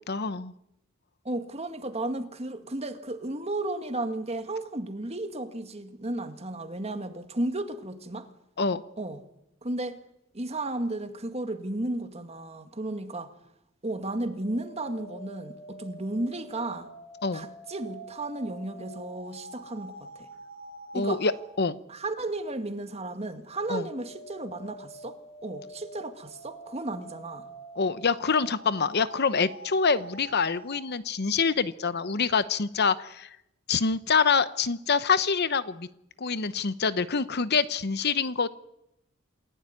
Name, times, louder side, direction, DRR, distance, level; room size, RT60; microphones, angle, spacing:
voice 1, 0.1-0.5 8.6-8.8 17.2-17.5 20.9-21.8 23.7-23.9 27.8-33.4 33.7-35.9 36.2-38.5, left 5 dB, 50° left, 0.9 m, -26 dB
voice 2, 1.2-8.3 9.0-9.2 9.6-10.0 10.3-13.3 13.8-16.9 17.3-20.3 20.9-21.2 21.9-27.5, right 2 dB, 30° right, 2.0 m, -34 dB
sound 1, 14.1-21.5 23.5-30.8, right 1 dB, 85° left, 5.3 m, -46 dB
28.0 x 16.5 x 9.6 m
head